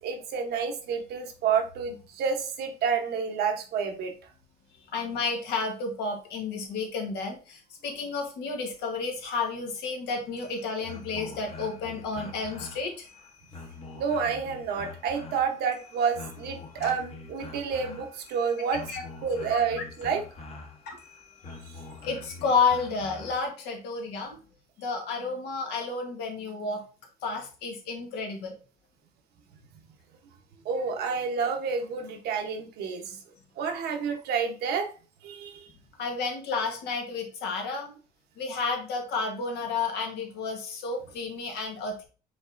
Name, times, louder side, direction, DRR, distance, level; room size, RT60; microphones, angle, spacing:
voice 1, 0.0-4.1 13.9-18.8 19.2-20.2 30.6-33.2 33.6-34.9 35.2-35.7, right 6 dB, 75° right, 4 dB, 0.9 m, -29 dB
voice 2, 4.9-13.1 16.8-16.9 18.9-19.0 19.5-19.6 20.9-21.0 22.0-24.4 24.8-26.8 27.2-28.5 36.0-37.9 38.4-42.0, left 4 dB, 80° left, 3 dB, 1.3 m, -31 dB
sound 1, 10.2-23.5, left 3 dB, 35° left, 1.0 m, -45 dB
5.3 x 3.5 x 2.5 m, 0.36 s
cardioid pair, 110°, 17 cm